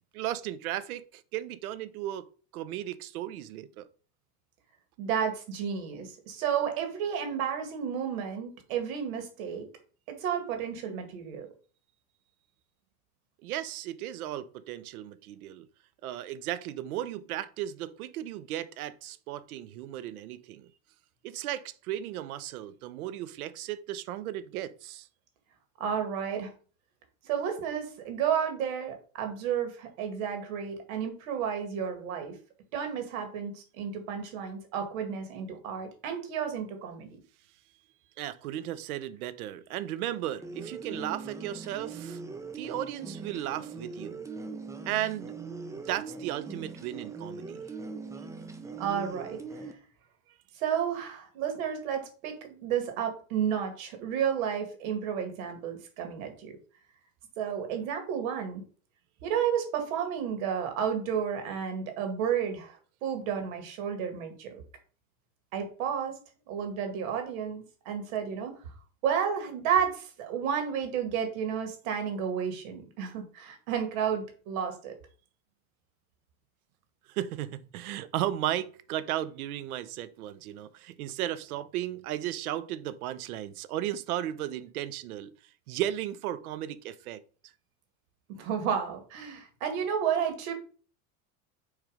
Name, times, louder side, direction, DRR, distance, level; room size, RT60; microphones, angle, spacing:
voice 1, 0.1-2.3 2.5-3.9 13.4-15.7 16.0-20.7 21.2-25.1 38.2-42.2 42.5-44.3 44.9-45.3 45.7-47.6 77.1-85.3 85.7-87.2, right 12 dB, 90° right, 0.7 m, -35 dB
voice 2, 5.0-9.7 10.1-11.5 25.8-26.5 27.2-32.4 32.7-37.1 48.8-49.4 50.6-56.5 57.4-58.6 59.2-62.8 63.0-64.6 65.5-66.2 66.5-68.5 69.0-74.9 88.3-90.5, right 8 dB, 75° right, 2.1 m, -32 dB
sound 1, 40.4-49.7, right 4 dB, 5° right, 0.5 m, -41 dB
6.5 x 3.3 x 5.0 m
supercardioid pair, 120°, 42 cm